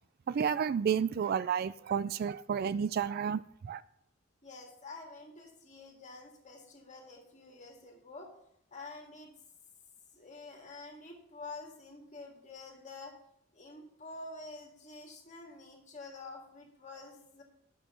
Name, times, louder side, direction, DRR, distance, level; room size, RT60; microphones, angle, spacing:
voice 1, 0.3-3.8, right 7 dB, 50° right, 17 dB, 0.3 m, -31 dB
voice 2, 4.4-8.3 8.7-9.3 10.1-13.1 13.5-17.4, left 3 dB, 35° left, 1 dB, 2.2 m, -48 dB
9.1 x 6.3 x 6.1 m, 0.72 s
head